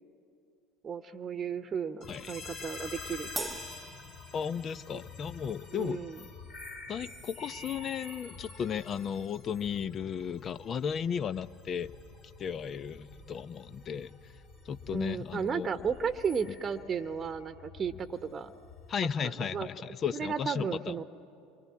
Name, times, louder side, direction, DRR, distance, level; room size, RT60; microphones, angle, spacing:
voice 1, 0.8-3.6 4.9-5.0 5.7-6.2 14.9-18.5 19.2-19.7 20.1-21.0, right 6 dB, 30° right, 10 dB, 1.0 m, -34 dB
sound 1, 2.0-19.0, left 3 dB, 55° left, 7.9 m, -48 dB
Crash cymbal, 3.4-5.0, right 2 dB, 10° right, 0.8 m, -41 dB
voice 2, 4.3-6.0 6.9-11.9 12.4-14.3 14.6-15.7 16.5-16.6 18.9-21.0, left 7 dB, 40° left, 15 dB, 0.7 m, -35 dB
28.5 x 23.5 x 8.5 m, 2.6 s
figure-of-eight pair, 70°, 0 cm